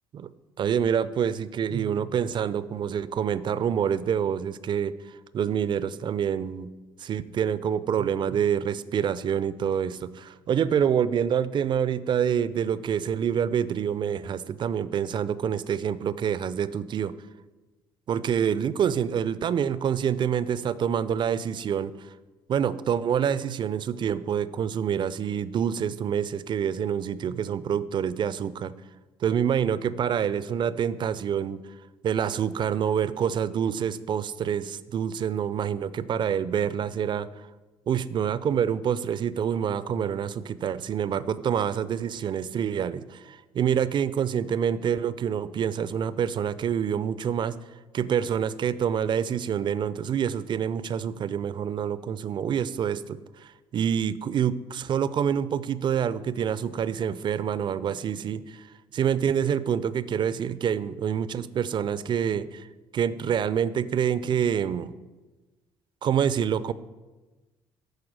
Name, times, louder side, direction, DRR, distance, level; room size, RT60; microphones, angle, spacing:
voice 1, 0.6-6.7 7.0-17.1 18.1-22.1 22.5-28.7 29.2-31.6 32.0-37.5 37.9-47.6 47.9-58.7 58.9-62.7 62.9-64.9 66.0-66.7, right 8 dB, 40° right, 16 dB, 0.4 m, -27 dB
13.0 x 4.8 x 4.7 m, 1.2 s
figure-of-eight pair, 50°, 13 cm